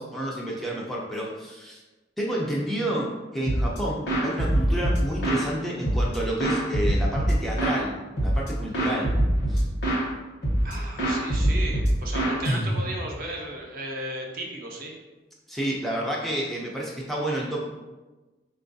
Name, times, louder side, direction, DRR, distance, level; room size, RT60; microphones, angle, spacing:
voice 1, 0.0-1.8 2.2-7.9 8.2-9.2 9.5-9.7 15.5-17.6, right 1 dB, ahead, -4 dB, 0.3 m, -30 dB
sound 1, 3.5-3.8 4.1-5.5 5.8-7.8 8.2-8.5 8.7-10.1 10.4-10.7 11.0-13.1, right 1 dB, 80° left, 0.9 m, -24 dB
voice 2, 10.6-14.9, right 1 dB, 50° right, 0 dB, 0.5 m, -35 dB
4.3 x 2.3 x 2.6 m, 1.2 s
head